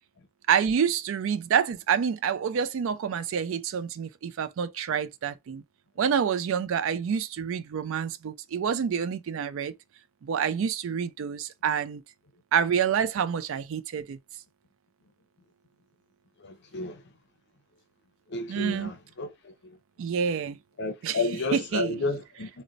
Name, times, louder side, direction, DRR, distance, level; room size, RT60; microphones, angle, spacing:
voice 1, 0.5-5.6 6.0-9.7 10.2-12.0 12.5-14.2 18.5-18.9 20.0-20.6 21.0-22.0, right 7 dB, 60° right, 0.3 m, -27 dB
voice 2, 16.4-17.0 18.3-19.3 19.6-19.8 20.8-22.5, left 3 dB, 50° left, 0.6 m, -31 dB
4.0 x 2.1 x 2.5 m
head